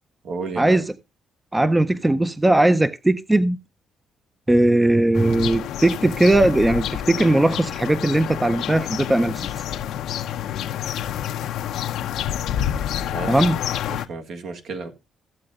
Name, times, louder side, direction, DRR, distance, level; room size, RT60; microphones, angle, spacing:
voice 1, 0.2-0.8 13.0-13.5 13.9-15.0, right 4 dB, 70° right, 1.6 m, -32 dB
voice 2, 1.5-3.6 4.5-9.5 13.3-13.6, right 1 dB, 10° right, 0.5 m, -18 dB
sound 1, 5.1-14.1, left 10 dB, 80° left, 0.7 m, -28 dB
15.0 x 7.7 x 2.4 m
cardioid pair, 90°, 0 cm